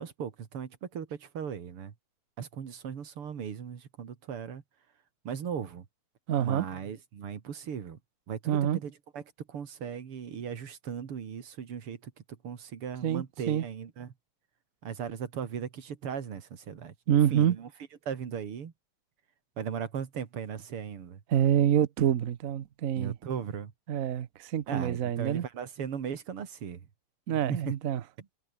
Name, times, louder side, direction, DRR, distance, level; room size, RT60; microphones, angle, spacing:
voice 1, 0.0-1.9 2.4-4.6 5.2-5.9 6.4-8.0 8.3-9.2 9.5-12.1 12.4-14.1 14.8-17.7 18.1-18.7 19.6-21.2 23.0-23.7 24.7-26.8 27.5-27.7, right 7 dB, 85° right, 3.0 m, -37 dB
voice 2, 6.3-6.6 8.5-8.8 13.0-13.6 17.1-17.6 21.3-23.2 23.9-25.4 27.3-28.0, right 10 dB, 55° right, 1.0 m, -26 dB
omnidirectional pair, 2.4 m